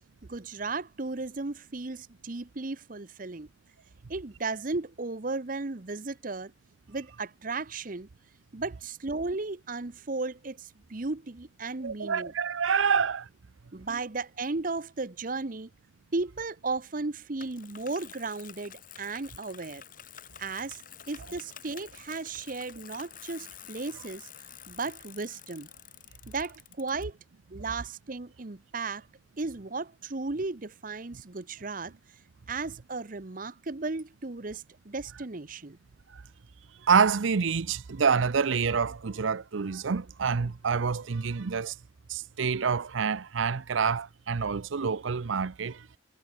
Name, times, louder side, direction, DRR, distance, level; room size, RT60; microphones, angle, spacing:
voice 1, 0.3-3.5 4.1-6.5 6.9-8.1 8.5-12.3 12.9-13.0 13.7-15.7 16.1-19.8 20.4-20.8 21.1-24.3 24.7-25.7 26.3-27.2 27.5-29.1 29.4-31.9 32.5-35.8, right 3 dB, 45° right, 0.9 m, -35 dB
voice 2, 11.8-13.3 13.9-14.0 36.1-36.2 36.8-41.8 42.1-45.9, right 6 dB, 85° right, 0.6 m, -27 dB
Bicycle, 17.4-27.0, left 10 dB, 45° left, 3.9 m, -49 dB
head